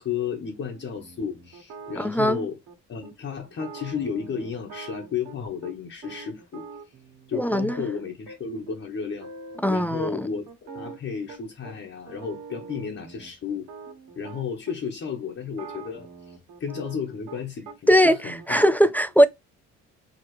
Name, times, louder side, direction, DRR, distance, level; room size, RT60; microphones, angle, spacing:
voice 1, 0.0-2.6 2.9-6.7 7.3-9.3 9.7-10.5 10.7-13.7 14.2-18.7, left 6 dB, 45° left, 1.2 m, -33 dB
sound 1, 0.6-2.7 3.0-3.1 3.5-5.7 6.0-8.4 8.7-8.8 9.0-9.6 9.9-11.7 12.1-14.8 15.4-17.8 18.0-18.6, right 4 dB, 80° right, 1.5 m, -43 dB
voice 2, 2.0-2.4 7.3-7.8 9.6-10.3 17.9-18.2 18.5-19.3, equal, 5° left, 0.3 m, -19 dB
4.9 x 2.8 x 3.1 m
cardioid pair, 90°, 30 cm